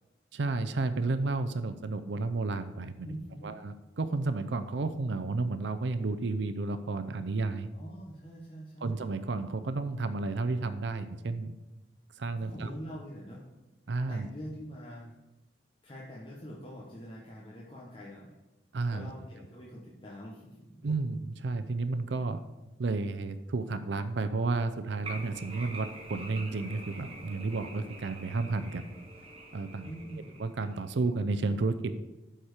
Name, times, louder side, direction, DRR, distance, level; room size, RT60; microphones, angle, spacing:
voice 1, 0.3-3.2 3.4-7.7 8.8-11.5 12.2-12.7 13.9-14.3 18.7-19.1 20.8-22.4 22.8-28.8 29.5-29.9 30.4-31.9, right 3 dB, 75° right, 11 dB, 0.5 m, -32 dB
voice 2, 3.0-3.5 7.7-9.0 12.4-13.5 14.1-15.1 15.8-18.3 18.9-20.8 29.8-30.3, equal, 30° left, -5 dB, 1.1 m, -44 dB
sound 1, 25.0-31.1, right 2 dB, 30° right, 1.4 m, -46 dB
12.5 x 4.4 x 4.9 m, 1.0 s
head